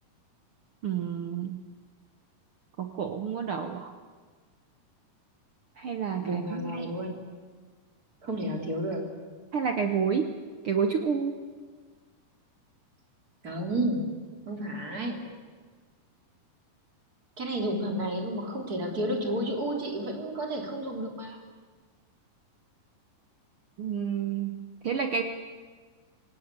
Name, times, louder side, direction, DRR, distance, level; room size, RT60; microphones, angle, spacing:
voice 1, 0.8-1.6 2.8-3.9 5.8-6.9 9.5-10.3 10.6-11.4 23.8-25.2, right 6 dB, 70° right, 6 dB, 1.3 m, -29 dB
voice 2, 6.2-7.2 8.2-9.0 13.4-14.0 14.5-15.2 17.4-21.4, right 1 dB, 25° right, 2 dB, 3.5 m, -31 dB
26.0 x 18.0 x 8.4 m, 1.5 s
omnidirectional pair, 4.0 m